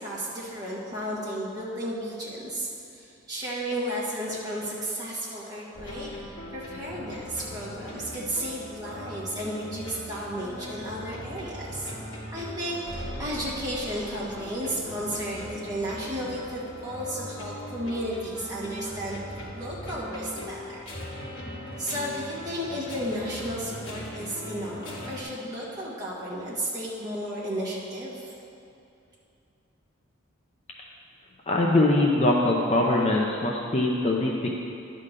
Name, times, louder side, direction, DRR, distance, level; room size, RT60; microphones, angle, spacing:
voice 1, 0.0-6.1 6.5-19.2 19.5-20.8 21.8-28.3, equal, 20° right, -7 dB, 1.7 m, -33 dB
sound 1, 5.7-25.2, left 1 dB, 70° left, 1.7 m, -40 dB
voice 2, 31.5-34.5, left 2 dB, 30° left, -2 dB, 0.6 m, -22 dB
11.0 x 3.8 x 6.6 m, 2.6 s
head